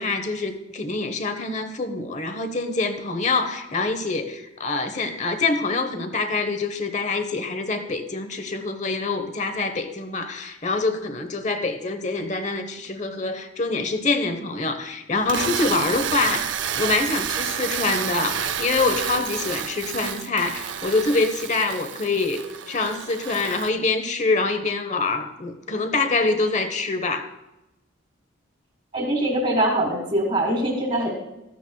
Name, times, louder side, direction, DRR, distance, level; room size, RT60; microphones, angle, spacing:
voice 1, 0.0-27.3, left 3 dB, 35° left, 8 dB, 0.9 m, -25 dB
sound 1, 15.2-23.7, right 8 dB, 65° right, 0.6 m, -30 dB
voice 2, 28.9-31.1, right 1 dB, 35° right, -1 dB, 1.7 m, -23 dB
14.5 x 13.5 x 2.3 m, 0.95 s
head